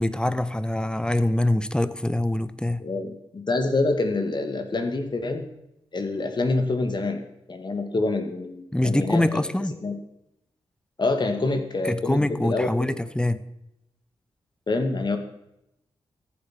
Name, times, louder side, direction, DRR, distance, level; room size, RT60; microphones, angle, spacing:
voice 1, 0.0-2.8 8.7-9.8 11.8-13.4, left 1 dB, 10° left, 0.9 m, -24 dB
voice 2, 2.8-5.5 5.9-7.2 7.5-9.4 9.8-10.0 11.0-13.0 14.7-15.2, left 3 dB, 45° left, 1.9 m, -26 dB
14.0 x 7.8 x 6.0 m
cardioid pair, 50°, 10 cm